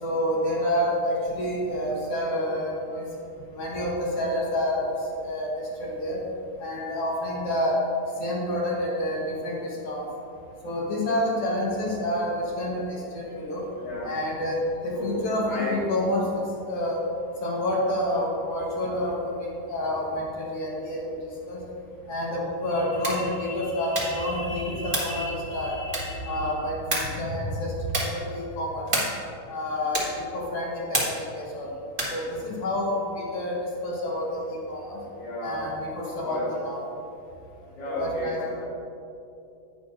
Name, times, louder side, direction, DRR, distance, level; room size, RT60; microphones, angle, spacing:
voice 1, 0.0-3.1 3.5-6.2 6.6-7.8 8.2-10.1 10.6-13.6 14.0-17.0 17.4-21.0 21.5-21.6 22.1-28.9 29.5-31.7 32.1-35.0 35.4-36.8 37.8-38.4, left 1 dB, 55° left, -4 dB, 1.9 m, -28 dB
voice 2, 13.8-14.2 14.9-15.9 35.2-35.7 36.2-36.5 37.7-38.6, left 2 dB, 85° left, -14 dB, 3.9 m, -32 dB
sound 1, 22.9-23.3 23.9-24.3 24.9-25.2 25.9-26.3 26.9-27.2 27.9-28.2 28.9-29.3 29.9-30.2 30.9-31.3 31.9-32.2, right 1 dB, 55° right, 0.5 m, -29 dB
10.5 x 9.1 x 2.6 m, 2.7 s
omnidirectional pair, 3.7 m